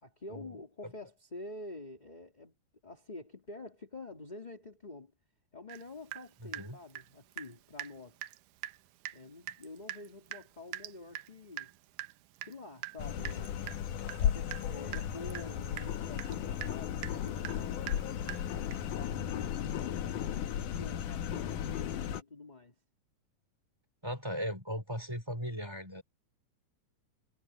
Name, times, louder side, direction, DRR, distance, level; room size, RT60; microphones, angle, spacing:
voice 1, 0.0-2.5 2.8-5.1 5.5-8.2 9.1-11.7 12.4-13.7 14.2-18.4 18.9-20.1 20.5-22.7, left 2 dB, 15° left, 1.9 m, -48 dB
Water tap faucet / Drip, 5.7-5.8 6.1-7.5 7.8-7.9 8.2-8.4 8.6-8.8 9.1-9.2 9.5-19.0, right 15 dB, 75° right, 2.2 m, -44 dB
voice 2, 6.4-6.8 9.5-9.6 24.0-26.0, equal, 5° right, 4.6 m, -38 dB
sound 1, 13.0-22.2, left 9 dB, 65° left, 2.6 m, -35 dB
omnidirectional pair, 4.2 m